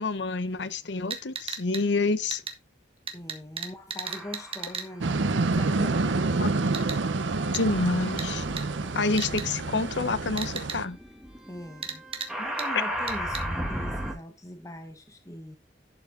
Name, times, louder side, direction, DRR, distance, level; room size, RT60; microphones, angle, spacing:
voice 1, 0.0-2.4 6.4-6.5 7.5-8.4 8.9-11.0, left 3 dB, 70° left, 0.8 m, -28 dB
sound 1, 1.1-1.8 2.3-2.5 3.1-4.9 6.7-7.0 7.5-7.6 8.2-8.3 8.6-8.7 9.2-9.5 10.4-10.8 11.8-12.3 12.6-12.7 13.1-13.4, right 6 dB, 30° right, 1.5 m, -34 dB
voice 2, 3.1-7.0 11.5-12.0 12.4-15.6, left 1 dB, 20° left, 1.1 m, -42 dB
sound 2, 4.0-4.8 5.6-14.1, equal, 5° right, 2.2 m, -37 dB
sound 3, 5.0-10.8, right 3 dB, 85° right, 0.8 m, -28 dB
11.5 x 5.8 x 3.7 m
head